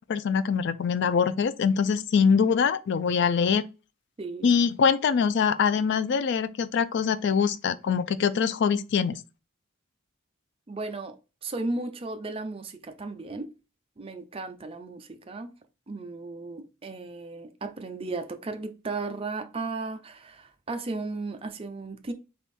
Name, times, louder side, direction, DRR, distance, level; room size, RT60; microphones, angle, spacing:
voice 1, 0.1-3.6 4.4-9.2, left 6 dB, 55° left, 0.3 m, -23 dB
voice 2, 4.2-4.5 10.7-11.1 11.4-13.5 14.0-15.5 15.9-22.1, right 3 dB, 25° right, 0.5 m, -35 dB
3.6 x 3.4 x 4.2 m
head